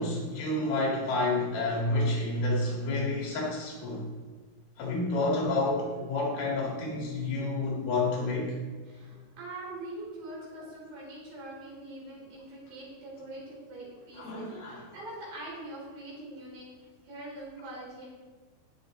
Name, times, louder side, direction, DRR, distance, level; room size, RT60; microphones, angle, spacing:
voice 1, 0.0-4.1 4.8-8.5 14.2-14.8, left 2 dB, 70° left, -2 dB, 4.0 m, -29 dB
voice 2, 8.8-18.1, right 1 dB, 65° right, -5 dB, 5.7 m, -43 dB
16.5 x 6.5 x 3.8 m, 1.4 s
omnidirectional pair, 4.7 m